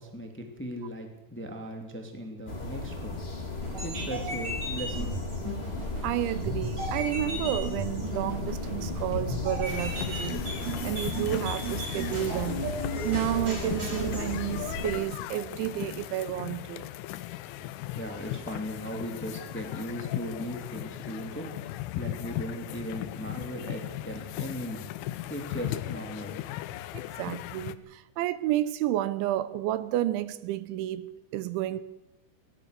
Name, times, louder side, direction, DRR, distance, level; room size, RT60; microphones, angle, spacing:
voice 1, 0.0-3.2 3.5-5.2 17.6-24.9 25.3-26.4, equal, 5° left, 1.8 m, -38 dB
sound 1, 2.5-15.0, left 2 dB, 65° left, 0.6 m, -35 dB
sound 2, 3.6-14.3, right 2 dB, 40° right, 7.0 m, -36 dB
voice 2, 6.0-10.4 10.8-12.6 13.0-16.9 26.9-31.8, right 13 dB, 80° right, 3.1 m, -31 dB
sound 3, 9.7-27.8, left 14 dB, 85° left, 3.3 m, -37 dB
21.5 x 18.5 x 6.8 m
omnidirectional pair, 5.4 m